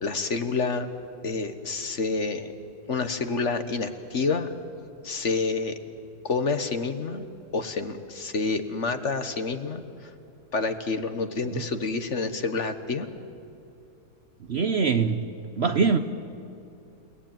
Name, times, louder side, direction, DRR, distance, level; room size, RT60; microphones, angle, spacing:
voice 1, 0.0-0.9 1.2-2.5 2.9-4.5 5.0-5.7 6.2-7.3 7.5-10.1 10.5-13.1, left 4 dB, 50° left, 9 dB, 1.4 m, -28 dB
voice 2, 14.5-15.3 15.6-16.0, right 5 dB, 50° right, 9 dB, 0.9 m, -22 dB
30.0 x 19.0 x 9.0 m, 2.7 s
omnidirectional pair, 1.7 m